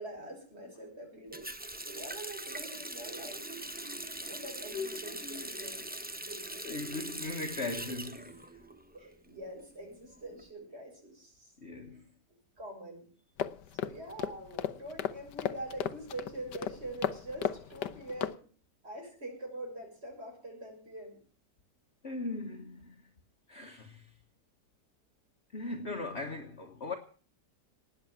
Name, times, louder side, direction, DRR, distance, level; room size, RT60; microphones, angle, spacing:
voice 1, 0.0-3.5 3.8-6.6 8.9-12.0 12.6-13.1 13.7-18.5 18.8-21.2, right 1 dB, 35° right, 7.1 m, -45 dB
Water tap faucet, 1.3-9.1 9.4-10.4, right 1 dB, 10° right, 0.7 m, -42 dB
voice 2, 4.7-5.5 6.6-8.6 11.6-12.0 22.0-23.1 23.5-24.2 25.5-26.9, left 3 dB, 40° left, 1.7 m, -39 dB
sound 1, 13.4-18.4, left 10 dB, 85° left, 1.5 m, -36 dB
19.0 x 7.1 x 9.4 m
omnidirectional pair, 1.8 m